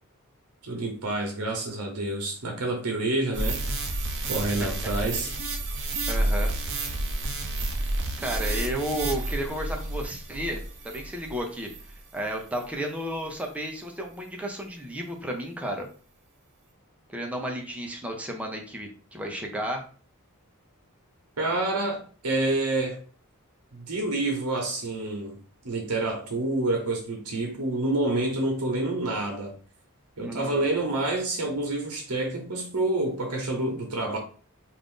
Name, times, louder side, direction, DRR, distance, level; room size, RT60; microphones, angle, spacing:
voice 1, 0.6-3.6 4.3-5.3 21.4-23.0 23.7-25.4 25.6-29.5 30.2-34.2, right 2 dB, 85° right, 0.8 m, -28 dB
sound 1, 3.3-12.0 12.5-12.6, right 2 dB, 55° right, 0.5 m, -30 dB
voice 2, 4.6-5.3 6.1-6.5 7.7-7.8 8.2-11.7 12.1-15.9 17.1-19.8 30.2-30.7, equal, 5° right, 0.6 m, -33 dB
2.5 x 2.5 x 3.6 m
head